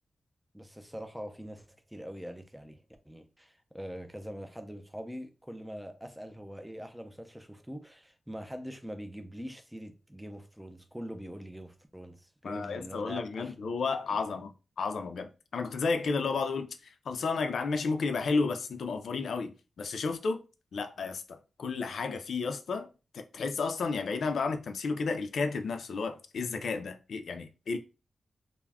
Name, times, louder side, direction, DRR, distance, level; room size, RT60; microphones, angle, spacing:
voice 1, 0.5-13.5, equal, 5° right, 0.4 m, -43 dB
voice 2, 12.4-20.4 20.7-22.9 23.1-27.8, left 4 dB, 80° left, 0.3 m, -32 dB
2.2 x 2.0 x 3.4 m
wide cardioid pair, 110°, 0 cm